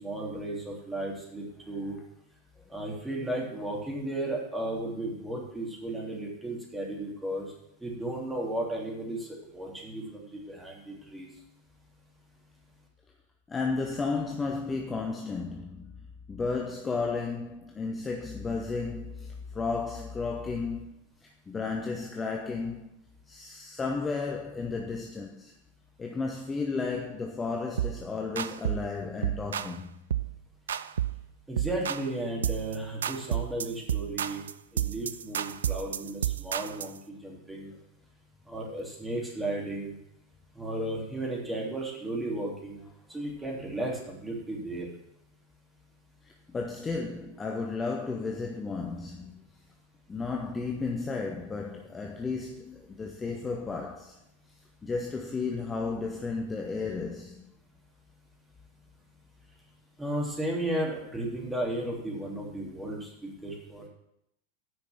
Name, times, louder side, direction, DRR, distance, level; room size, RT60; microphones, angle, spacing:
voice 1, 0.0-1.9 2.7-7.5 7.8-9.3 9.5-11.3 31.5-34.4 34.7-37.7 38.5-39.9 40.5-42.8 43.1-44.9 60.0-63.9, right 1 dB, 10° right, 3.1 m, -34 dB
voice 2, 13.5-15.9 16.3-20.9 21.5-25.5 26.0-29.9 46.5-49.4 50.1-54.2 54.8-57.5, left 4 dB, 15° left, 1.0 m, -33 dB
sound 1, 27.8-28.0 28.4-28.9 29.2-29.8 30.1-30.3 30.7-31.2 31.6-32.1 32.4-32.8 33.0-37.0, right 10 dB, 65° right, 0.4 m, -31 dB
9.8 x 5.7 x 7.0 m
figure-of-eight pair, 90°, 0 cm